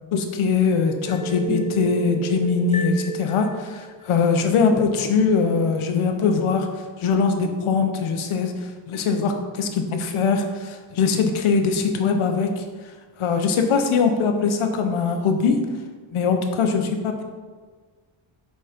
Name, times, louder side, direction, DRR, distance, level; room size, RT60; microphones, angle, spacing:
voice 1, 0.1-6.7 7.0-8.5 8.9-12.6 13.2-15.6 16.1-17.2, left 5 dB, 90° left, 5 dB, 1.1 m, -21 dB
sound 1, 1.1-4.4, right 2 dB, 15° left, 0.4 m, -31 dB
7.6 x 4.2 x 5.1 m, 1.5 s
wide cardioid pair, 170°, 48 cm